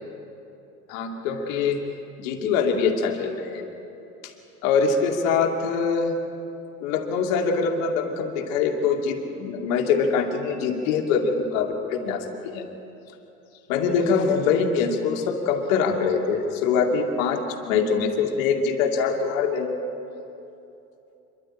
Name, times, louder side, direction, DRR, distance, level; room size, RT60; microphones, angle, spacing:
voice 1, 0.9-1.8 2.2-3.7 4.2-4.3 4.6-6.1 6.8-12.7 13.7-19.7, left 5 dB, 60° left, 3 dB, 2.6 m, -24 dB
28.0 x 12.5 x 8.9 m, 2.9 s
figure-of-eight pair, 70°, 46 cm